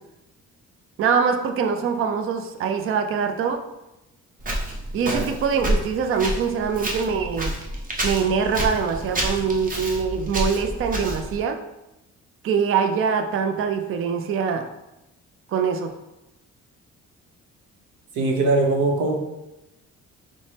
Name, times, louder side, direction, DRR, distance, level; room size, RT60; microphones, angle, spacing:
voice 1, 1.0-3.6 4.9-7.6 8.0-11.6 12.4-14.6 15.5-15.9, right 6 dB, 45° right, 7 dB, 0.4 m, -23 dB
Walk footsteps, 4.4-11.4, right 1 dB, 30° right, 0.9 m, -29 dB
voice 2, 18.2-19.2, right 2 dB, 75° right, 1 dB, 0.9 m, -21 dB
5.3 x 2.1 x 3.2 m, 0.95 s
cardioid pair, 90°, 30 cm